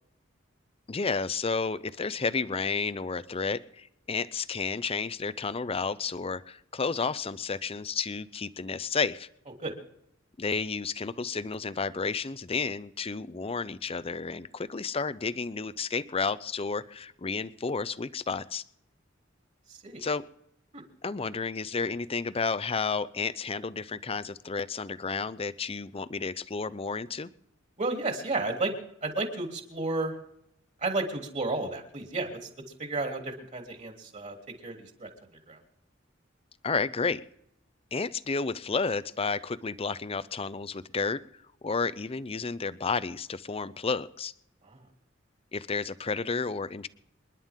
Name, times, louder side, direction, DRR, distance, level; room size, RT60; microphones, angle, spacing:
voice 1, 0.9-9.3 10.4-18.6 20.0-20.2 21.0-27.3 36.6-37.2 37.9-41.2 41.6-44.3 45.5-46.9, left 4 dB, 30° left, 16 dB, 0.6 m, -31 dB
voice 2, 19.7-20.0 20.7-20.8 27.8-28.7 29.0-30.1 30.8-32.5 32.8-35.1 35.5-35.6 44.6-44.8, right 2 dB, 40° right, 2 dB, 3.2 m, -32 dB
28.0 x 11.0 x 3.7 m, 0.79 s
head